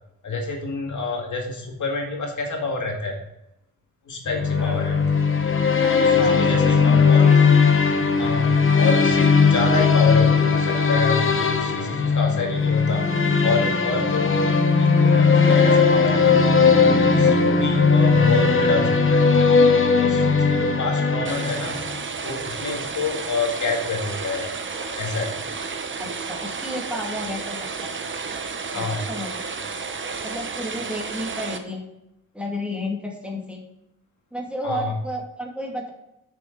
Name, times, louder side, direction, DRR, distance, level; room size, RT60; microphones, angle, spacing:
voice 1, 0.2-3.2 4.1-5.0 6.4-7.4 8.2-13.0 13.4-16.4 16.7-19.7 20.0-21.8 22.2-24.5 25.0-25.3 28.7-29.1 34.6-34.9, left 3 dB, 60° left, 1 dB, 2.0 m, -28 dB
sound 1, 4.3-22.0, left 5 dB, 35° left, 1.1 m, -18 dB
voice 2, 5.8-7.4 26.0-27.9 28.7-29.4 30.2-31.8 32.3-33.6 34.3-35.9, left 1 dB, 5° right, -1 dB, 2.3 m, -32 dB
sound 2, 21.2-31.6, right 4 dB, 35° right, 1.0 m, -32 dB
8.3 x 6.5 x 3.9 m, 0.87 s
cardioid pair, 100°, 34 cm